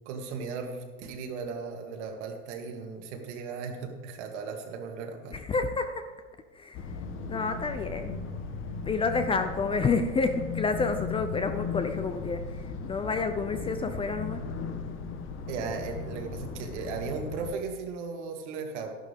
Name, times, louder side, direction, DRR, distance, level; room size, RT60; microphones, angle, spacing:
voice 1, 0.1-5.4 15.5-18.9, right 5 dB, 65° right, 3 dB, 2.2 m, -36 dB
voice 2, 5.3-6.1 6.6-6.8 7.3-8.1 8.8-14.4, left 4 dB, 15° left, 8 dB, 0.4 m, -29 dB
sound 1, 6.7-17.5, left 5 dB, 35° left, 1.1 m, -37 dB
12.5 x 11.0 x 3.5 m, 1.4 s
hypercardioid pair, 115°, 37 cm